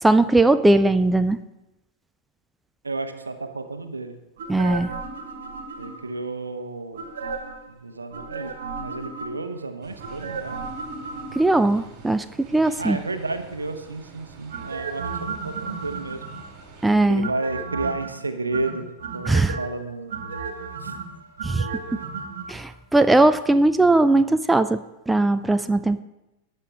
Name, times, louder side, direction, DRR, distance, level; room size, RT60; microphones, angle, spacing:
voice 1, 0.0-1.4 4.5-4.9 11.3-13.0 16.8-17.3 19.3-19.6 21.4-21.7 22.5-26.0, right 2 dB, 5° right, 12 dB, 0.3 m, -19 dB
voice 2, 2.8-4.2 5.8-7.1 7.7-10.6 12.8-15.1 15.4-16.2 17.1-18.9 19.1-20.1 20.8-20.9, right 3 dB, 80° right, 8 dB, 0.9 m, -31 dB
sound 1, 4.4-6.2 6.9-7.7 8.1-9.6 10.0-11.7 14.5-16.6 17.2-18.1 18.5-19.7 20.1-22.5 22.7-22.8, right 4 dB, 60° right, 1.5 m, -34 dB
sound 2, 9.8-16.9, right 5 dB, 35° right, 2.6 m, -47 dB
17.5 x 6.6 x 3.6 m, 0.99 s
figure-of-eight pair, 90°, 0 cm